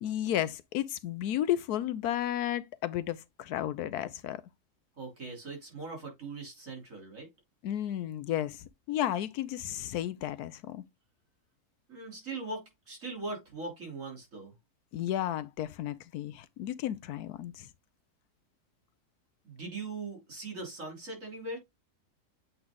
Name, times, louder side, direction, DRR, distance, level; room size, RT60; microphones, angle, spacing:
voice 1, 0.0-4.4 7.6-10.8 14.9-17.7, left 12 dB, 80° left, 1.1 m, -33 dB
voice 2, 5.0-7.3 11.9-14.5 19.4-21.6, right 3 dB, 55° right, 3.6 m, -40 dB
7.9 x 3.4 x 3.7 m
omnidirectional pair, 1.7 m